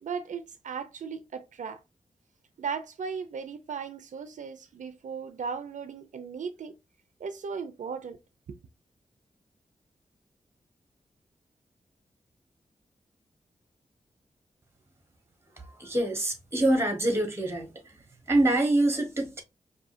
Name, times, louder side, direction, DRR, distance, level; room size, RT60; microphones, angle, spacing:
voice 1, 0.0-1.8 2.6-6.8 7.2-8.2 8.5-8.6, right 6 dB, 75° right, 0.4 m, -36 dB
voice 2, 15.8-17.7 18.3-19.4, right 1 dB, 20° right, 1.2 m, -25 dB
4.8 x 2.7 x 2.5 m
wide cardioid pair, 150°, 13 cm